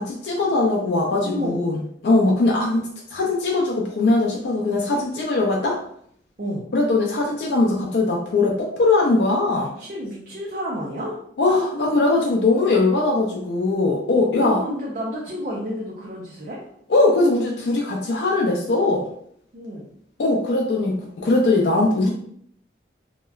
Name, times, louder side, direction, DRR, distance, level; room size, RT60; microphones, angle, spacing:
voice 1, 0.0-5.8 6.7-9.7 11.4-14.6 16.9-19.0 20.2-22.1, left 2 dB, 75° left, -1 dB, 0.4 m, -20 dB
voice 2, 1.2-1.6 6.4-6.6 9.8-11.2 14.4-16.6 19.5-19.9, equal, 45° right, -4 dB, 0.4 m, -30 dB
2.8 x 2.1 x 2.3 m, 0.67 s
head